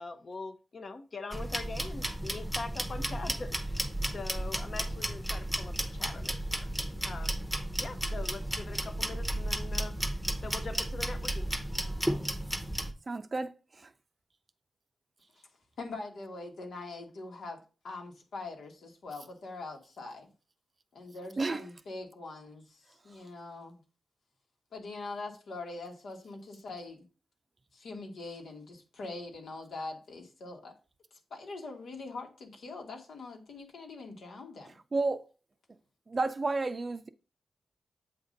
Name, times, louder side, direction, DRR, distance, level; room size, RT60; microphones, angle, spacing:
voice 1, 0.0-7.4 7.8-11.5, left 3 dB, 50° left, 0.8 m, -43 dB
sound 1, 1.3-12.9, right 1 dB, 5° left, 0.9 m, -33 dB
voice 2, 13.1-13.9 21.4-21.6 34.9-35.3 36.1-37.1, right 3 dB, 40° right, 0.5 m, -31 dB
voice 3, 15.8-20.3 20.9-23.8 24.7-27.1 27.7-30.7 31.1-34.7, left 3 dB, 80° left, 1.4 m, -43 dB
7.9 x 2.7 x 5.1 m
cardioid pair, 75°, 0 cm